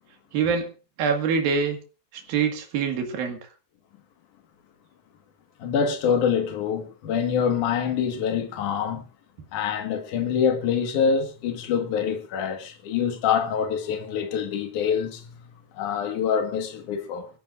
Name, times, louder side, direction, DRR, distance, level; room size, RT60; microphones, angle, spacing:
voice 1, 0.3-0.7 1.0-1.8 2.3-3.4, right 6 dB, 85° right, 3.6 m, -24 dB
voice 2, 5.6-9.0 9.5-17.3, left 7 dB, 65° left, 3.0 m, -25 dB
24.0 x 14.0 x 2.5 m
omnidirectional pair, 4.1 m